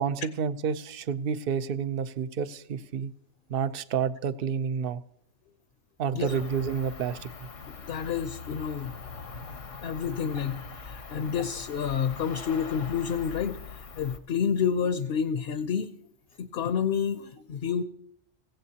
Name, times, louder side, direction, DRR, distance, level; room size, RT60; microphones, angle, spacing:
voice 1, 0.0-3.1 3.5-5.0 6.0-7.5, right 7 dB, 55° right, 13 dB, 0.8 m, -29 dB
Cricket, 6.2-14.2, left 5 dB, 85° left, 1.3 m, -42 dB
voice 2, 7.7-8.9 9.8-15.9 16.4-17.8, left 7 dB, 60° left, 11 dB, 0.8 m, -29 dB
17.0 x 16.0 x 2.8 m, 0.70 s
omnidirectional pair, 1.3 m